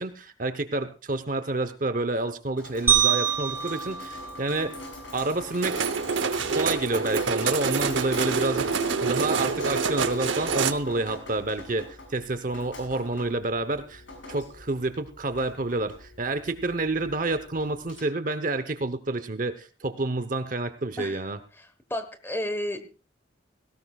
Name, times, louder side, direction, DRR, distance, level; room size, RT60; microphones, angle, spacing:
voice 1, 0.0-4.8 5.1-5.8 6.5-14.0 14.3-21.4, right 2 dB, 45° right, 11 dB, 0.9 m, -29 dB
Drip, 2.6-18.0, left 2 dB, 90° left, 6.5 m, -42 dB
sound 1, 2.9-5.2, right 8 dB, 10° right, 1.3 m, -26 dB
sound 2, 5.6-10.7, right 5 dB, 85° right, 0.8 m, -26 dB
voice 2, 21.9-22.9, left 1 dB, 10° left, 9 dB, 1.3 m, -31 dB
18.0 x 17.0 x 2.4 m, 0.33 s
head